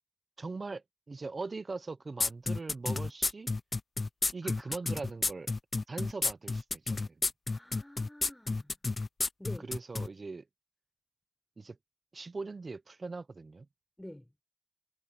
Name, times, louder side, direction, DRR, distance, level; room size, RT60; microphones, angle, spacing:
voice 1, 0.4-3.5 4.3-5.5 5.9-7.3 9.6-10.5 11.6-11.8 12.1-13.7, right 3 dB, 45° right, 0.8 m, -41 dB
sound 1, 2.2-10.1, left 3 dB, 40° left, 0.5 m, -31 dB
voice 2, 7.5-8.8 9.4-9.7 14.0-14.3, left 1 dB, 10° left, 4.9 m, -48 dB
wide cardioid pair, 90°, 0 cm